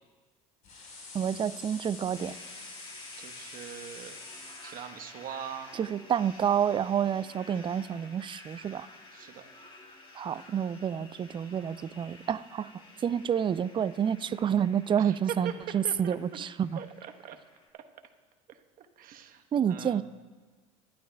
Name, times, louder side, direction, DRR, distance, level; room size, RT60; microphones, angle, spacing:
sound 1, 0.6-4.8, left 3 dB, 45° left, 4.5 m, -46 dB
voice 1, 1.1-2.3 5.7-8.9 10.1-12.7 13.0-16.8 19.5-20.0, right 8 dB, 25° right, 17 dB, 0.4 m, -29 dB
sound 2, 2.1-17.7, left 2 dB, 25° left, 2.3 m, -51 dB
voice 2, 3.2-4.2 4.6-5.8 9.1-9.4 15.0-15.5 15.8-16.4 16.8-17.4 17.7-17.8 18.5-20.0, right 10 dB, 50° right, 6 dB, 1.1 m, -42 dB
22.5 x 12.0 x 2.3 m, 1.3 s
hypercardioid pair, 80°, 19 cm